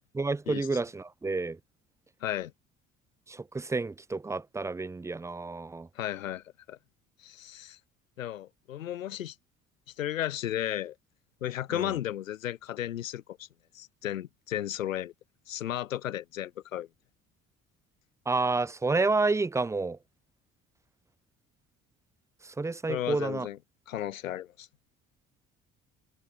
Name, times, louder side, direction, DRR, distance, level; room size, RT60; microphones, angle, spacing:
voice 1, 0.1-1.6 3.3-5.9 11.7-11.9 18.3-20.0 22.6-23.5, right 3 dB, 10° right, 0.4 m, -29 dB
voice 2, 2.2-2.5 6.0-6.8 7.2-7.8 8.2-9.3 10.0-10.9 11.4-13.5 13.7-15.1 15.5-16.9 22.9-23.6 23.9-24.7, left 12 dB, 85° left, 0.7 m, -34 dB
figure-of-eight pair, 50°, 39 cm